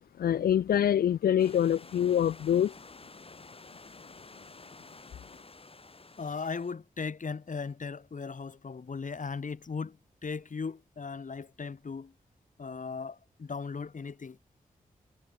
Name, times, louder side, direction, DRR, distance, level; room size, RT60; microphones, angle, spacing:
voice 1, 0.2-2.7, left 10 dB, 80° left, 0.5 m, -25 dB
Stream / Liquid, 1.4-6.7, left 3 dB, 40° left, 2.7 m, -51 dB
voice 2, 6.2-12.1 12.6-14.4, left 5 dB, 55° left, 2.8 m, -37 dB
cardioid pair, 45°, 15 cm